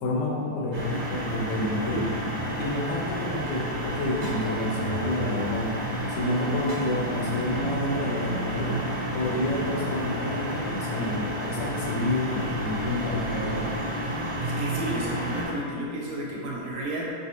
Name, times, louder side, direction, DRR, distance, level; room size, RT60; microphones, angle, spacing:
voice 1, 0.0-2.1 2.6-5.7 6.1-8.8 9.1-13.7, left 1 dB, 65° left, -2 dB, 1.1 m, -29 dB
sound 1, 0.7-15.5, equal, 55° right, 1.5 m, -31 dB
voice 2, 14.4-17.1, right 1 dB, 85° right, -4 dB, 1.7 m, -32 dB
5.2 x 3.1 x 2.7 m, 2.5 s
omnidirectional pair, 2.3 m